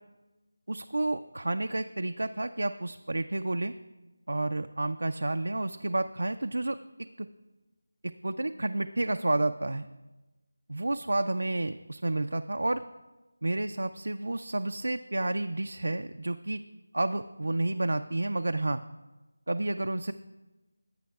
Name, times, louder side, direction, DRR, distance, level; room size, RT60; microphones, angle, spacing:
voice 1, 0.7-3.7 4.3-6.8 7.2-7.3 8.0-9.8 10.7-12.8 13.4-16.6 16.9-18.8 19.5-20.1, right 2 dB, 75° right, 7 dB, 0.4 m, -30 dB
17.5 x 8.5 x 2.4 m, 1.1 s
figure-of-eight pair, 175°, 0 cm